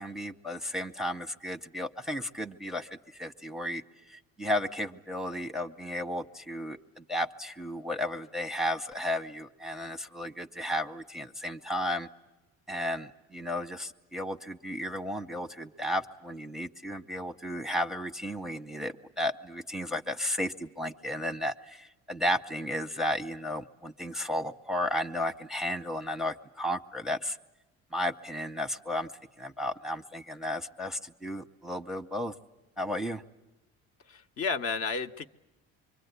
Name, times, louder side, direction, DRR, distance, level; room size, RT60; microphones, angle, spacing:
voice 1, 0.0-12.1 12.7-27.4 27.9-29.1 29.4-32.3 32.8-33.2, left 1 dB, ahead, 5 dB, 0.8 m, -34 dB
voice 2, 34.1-35.3, left 5 dB, 45° left, 7 dB, 0.9 m, -32 dB
25.0 x 24.0 x 8.1 m, 1.1 s
cardioid pair, 95°, 31 cm